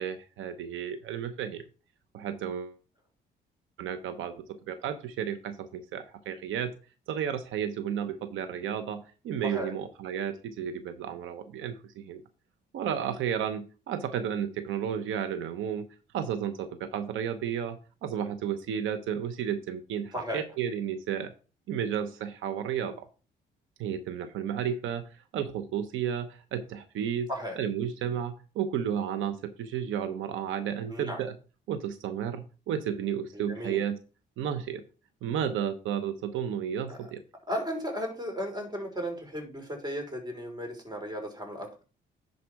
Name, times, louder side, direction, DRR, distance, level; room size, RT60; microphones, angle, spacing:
voice 1, 0.0-1.6 2.1-2.8 3.8-4.4 4.7-6.7 7.1-12.2 12.7-15.8 16.1-21.3 21.7-23.1 23.8-27.3 27.6-31.3 31.7-34.0 34.4-34.8 35.2-37.2, right 8 dB, 80° right, 10 dB, 0.9 m, -32 dB
voice 2, 9.4-9.7 20.1-20.4 27.3-27.6 30.9-31.2 33.3-33.8 36.9-37.1 37.5-41.8, equal, 20° right, 3 dB, 3.8 m, -35 dB
10.5 x 4.2 x 4.7 m, 0.35 s
cardioid pair, 90°, 20 cm